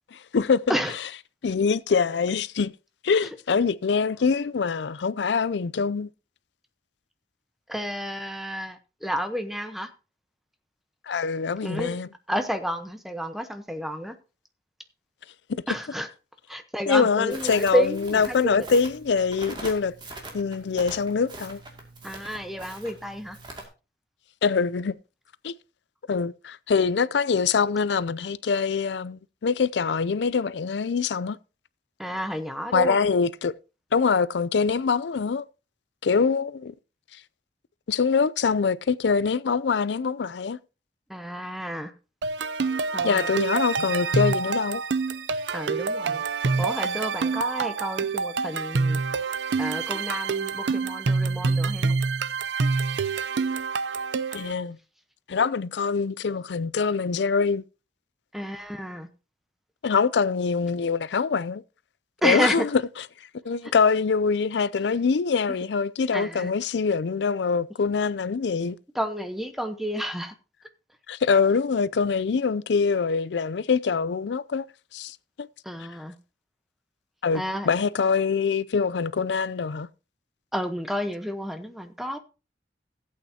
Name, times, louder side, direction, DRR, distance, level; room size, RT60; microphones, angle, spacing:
voice 1, 0.1-0.7 1.4-2.7 3.0-6.1 11.1-12.1 15.5-15.6 16.9-19.9 20.3-21.6 24.4-24.9 25.4-25.5 26.1-31.4 32.7-33.5 33.9-35.4 36.0-36.7 37.9-40.6 43.0-44.8 54.3-54.8 55.3-57.6 59.8-61.6 62.2-62.8 63.4-68.8 71.1-74.6 74.9-75.5 77.2-79.9, left 5 dB, 80° left, 0.5 m, -24 dB
voice 2, 7.7-9.9 11.6-12.0 12.3-14.2 15.7-16.1 16.5-18.7 22.0-23.4 32.0-33.0 41.1-41.9 42.9-43.3 45.5-46.2 46.6-49.0 49.6-52.0 58.3-59.1 62.2-62.7 63.6-63.7 66.1-66.5 68.9-70.3 75.6-76.1 77.3-77.7 80.5-82.2, equal, ahead, 1.0 m, -30 dB
Crackle, 17.3-23.6, right 2 dB, 25° right, 2.3 m, -42 dB
sound 1, 42.2-54.5, right 4 dB, 90° right, 0.5 m, -27 dB
16.0 x 8.6 x 2.8 m
head